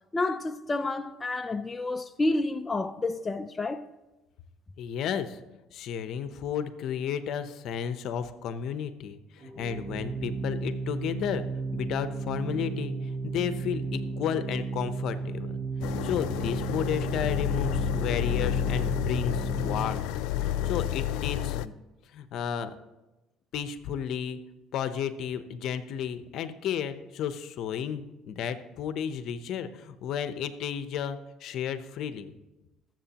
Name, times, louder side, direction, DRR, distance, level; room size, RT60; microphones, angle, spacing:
voice 1, 0.1-3.9, left 2 dB, 20° left, 0.4 m, -29 dB
voice 2, 4.8-5.4 5.7-11.4 11.7-15.6 16.0-20.0 20.4-21.7 22.1-22.8 23.5-24.4 24.7-32.3, left 8 dB, 65° left, 0.8 m, -33 dB
Organ, 9.4-20.2, right 4 dB, 45° right, 1.1 m, -34 dB
sound 1, 15.8-21.7, left 12 dB, 85° left, 0.3 m, -30 dB
20.0 x 7.6 x 2.9 m
cardioid pair, 100°, 0 cm